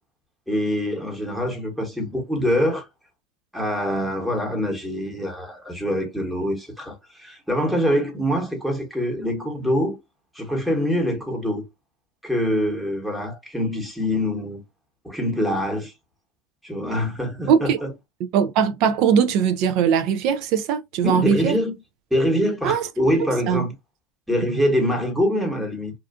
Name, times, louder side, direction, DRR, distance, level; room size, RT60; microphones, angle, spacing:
voice 1, 0.5-2.9 3.5-10.0 10.3-11.6 12.2-14.6 15.0-15.9 16.6-17.9 21.0-21.7 22.1-23.7 24.3-25.9, equal, 5° right, 1.1 m, -24 dB
voice 2, 17.5-17.8 18.3-21.6 22.6-22.9 23.5-23.7, right 7 dB, 55° right, 0.4 m, -20 dB
2.5 x 2.3 x 2.4 m
hypercardioid pair, 110°, 0 cm